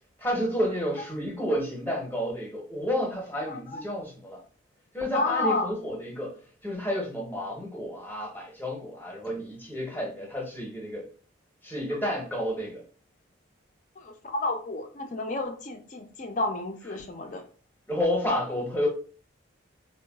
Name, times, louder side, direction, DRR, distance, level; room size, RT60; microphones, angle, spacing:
voice 1, 0.2-4.4 4.9-6.3 6.6-11.1 11.6-12.8 17.9-18.9, equal, 10° left, 0.7 m, -30 dB
voice 2, 3.5-3.9 5.1-5.7 14.0-17.4, left 2 dB, 40° left, 0.5 m, -31 dB
3.8 x 2.1 x 2.3 m
head